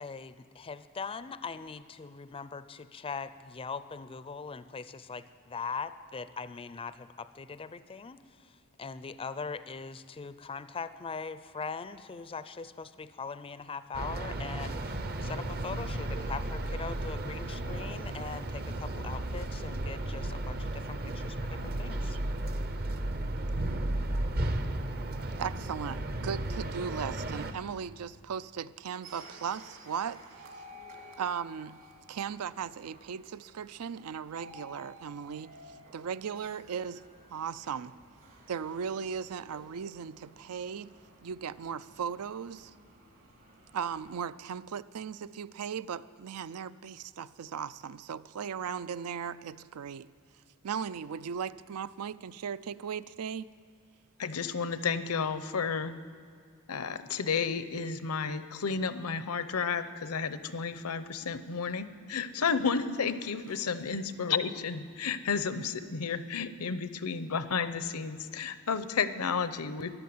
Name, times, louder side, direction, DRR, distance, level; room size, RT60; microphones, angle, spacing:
voice 1, 0.0-22.2, left 5 dB, 25° left, 13 dB, 0.4 m, -41 dB
sound 1, 13.9-27.5, right 1 dB, 45° right, 0.7 m, -34 dB
voice 2, 25.4-30.2 31.2-31.8 32.1-35.6 35.9-37.0 37.3-37.9 38.5-40.9 41.2-42.7 43.7-50.1 50.6-53.5, right 7 dB, 80° right, 16 dB, 0.4 m, -37 dB
sound 2, 29.0-44.2, right 1 dB, 60° right, 2.6 m, -54 dB
voice 3, 54.2-56.0 56.7-69.9, left 5 dB, 85° left, 12 dB, 0.7 m, -32 dB
14.0 x 11.0 x 7.8 m, 2.1 s
head